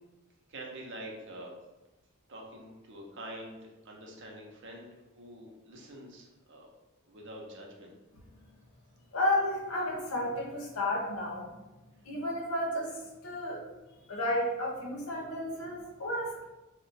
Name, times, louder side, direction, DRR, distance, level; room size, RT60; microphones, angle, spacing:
voice 1, 0.5-1.5 2.3-6.7 7.1-7.9, right 1 dB, 55° right, 0 dB, 0.6 m, -46 dB
voice 2, 9.1-11.5 12.0-13.6 14.1-16.4, left 1 dB, 70° left, -1 dB, 0.8 m, -32 dB
2.4 x 2.1 x 3.9 m, 1.1 s
head